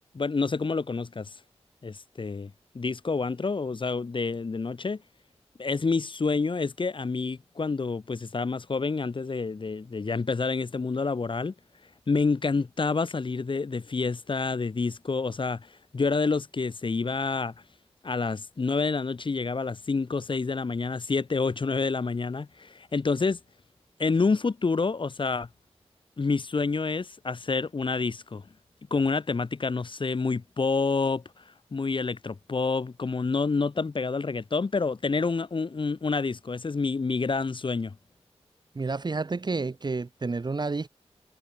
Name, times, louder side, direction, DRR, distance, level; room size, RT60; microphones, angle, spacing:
voice 1, 0.1-1.3 1.8-5.0 5.6-11.5 12.1-15.7 15.9-17.5 18.0-23.4 24.0-25.5 26.2-28.4 28.9-31.2 31.7-37.9, left 4 dB, 50° left, 3.2 m, -28 dB
voice 2, 38.8-40.9, right 3 dB, 40° right, 2.0 m, -30 dB
wide cardioid pair, 110°, 11 cm